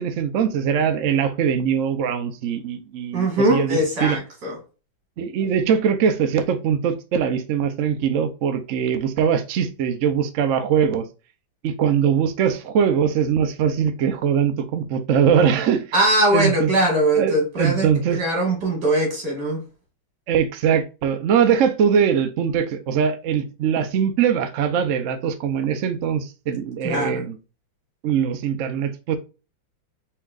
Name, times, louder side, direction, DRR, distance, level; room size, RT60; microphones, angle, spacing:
voice 1, 0.0-4.2 5.2-11.1 11.6-15.9 16.3-16.7 17.1-18.2 20.3-27.4 28.0-29.2, right 7 dB, 75° right, 0.7 m, -21 dB
voice 2, 3.1-4.6 15.9-17.9 18.1-19.6 26.8-27.2, right 1 dB, 60° right, 2.6 m, -21 dB
4.6 x 4.4 x 2.4 m
omnidirectional pair, 2.2 m